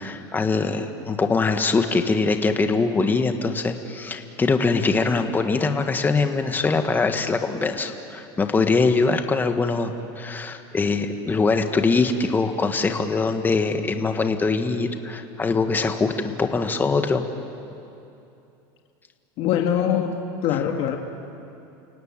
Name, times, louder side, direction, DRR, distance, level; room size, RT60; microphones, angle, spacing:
voice 1, 0.0-17.2, left 4 dB, 15° left, 6 dB, 1.6 m, -23 dB
voice 2, 19.4-20.2 20.4-21.0, left 9 dB, 55° left, 3 dB, 2.0 m, -22 dB
30.0 x 17.5 x 8.9 m, 2.7 s
supercardioid pair, 135°, 12 cm